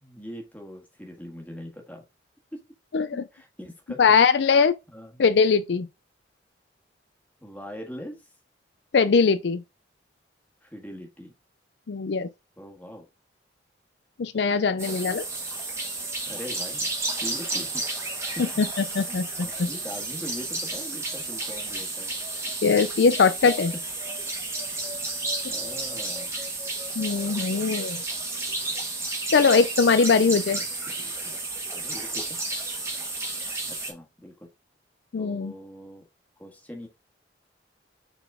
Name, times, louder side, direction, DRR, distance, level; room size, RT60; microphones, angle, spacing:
voice 1, 0.0-2.0 2.5-2.6 3.1-4.2 4.4-4.6 4.9-5.2 7.4-8.3 10.6-11.3 12.6-13.0 16.3-16.8 17.1-18.5 19.0-22.2 23.7-23.8 25.5-26.3 30.1-31.4 31.7-32.2 33.6-34.5 35.2-36.0 36.4-36.9, equal, 10° left, 1.5 m, -42 dB
voice 2, 2.9-3.2 4.0-4.7 5.2-5.9 8.9-9.6 11.9-12.3 14.2-15.2 18.6-18.7 18.9-19.2 19.6-19.7 22.6-23.7 27.0-28.0 29.3-30.6 35.1-35.5, left 5 dB, 70° left, 0.4 m, -21 dB
sound 1, 14.8-33.9, right 2 dB, 15° right, 1.4 m, -32 dB
6.9 x 4.1 x 3.6 m
head